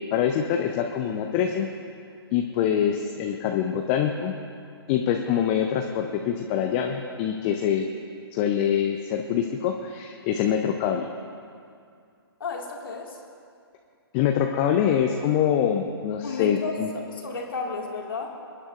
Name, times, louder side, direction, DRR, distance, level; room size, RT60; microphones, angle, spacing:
voice 1, 0.1-1.7 2.3-4.3 4.9-7.9 8.3-11.1 14.1-16.9, left 9 dB, 25° left, 4 dB, 0.6 m, -24 dB
voice 2, 12.4-13.2 16.2-18.4, left 3 dB, 55° left, 0 dB, 2.0 m, -33 dB
26.5 x 9.9 x 2.5 m, 2.4 s
figure-of-eight pair, 125°, 13 cm